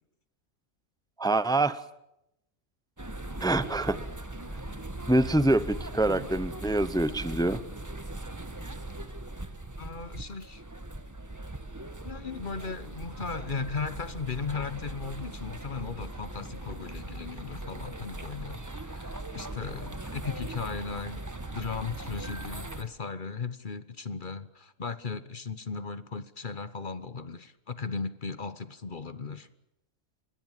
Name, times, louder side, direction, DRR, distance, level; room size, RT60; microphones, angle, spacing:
voice 1, 1.2-1.8 3.4-4.0 5.1-7.6, right 2 dB, 5° left, 15 dB, 0.5 m, -25 dB
sound 1, 3.0-22.8, right 2 dB, 15° right, 1.3 m, -39 dB
voice 2, 9.8-10.6 12.0-21.2 21.5-29.5, left 5 dB, 40° left, 14 dB, 1.1 m, -37 dB
26.5 x 21.0 x 7.4 m, 0.84 s
omnidirectional pair, 1.5 m